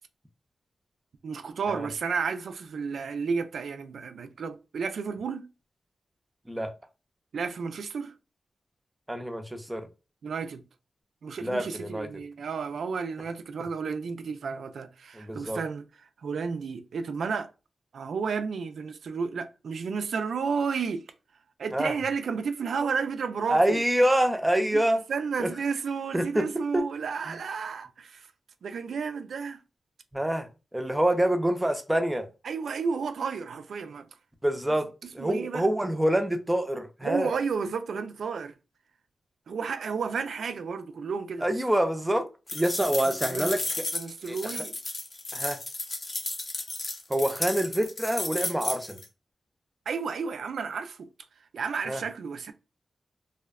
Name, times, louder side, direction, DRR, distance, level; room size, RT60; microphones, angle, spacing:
voice 1, 1.2-5.5 7.3-8.1 10.2-10.6 11.2-15.8 16.2-17.5 17.9-21.1 21.6-23.6 24.7-24.8 25.1-28.3 28.6-29.6 32.4-34.1 35.0-35.7 37.0-38.5 39.5-41.4 43.3-43.6 43.9-44.7 49.9-51.1 51.5-52.5, right 5 dB, 90° right, 0.3 m, -32 dB
voice 2, 9.1-9.9 11.4-12.1 15.1-15.6 21.7-21.9 23.5-25.0 25.4-25.5 26.1-26.9 27.2-27.4 30.1-32.3 34.4-34.9 35.1-37.3 41.4-42.3 42.5-43.9 44.3-44.6 45.3-45.6 47.1-49.0 51.9-52.0, right 1 dB, 10° right, 0.4 m, -26 dB
sound 1, 42.5-49.0, left 2 dB, 40° left, 0.5 m, -33 dB
2.6 x 2.1 x 2.3 m
wide cardioid pair, 155°, 0 cm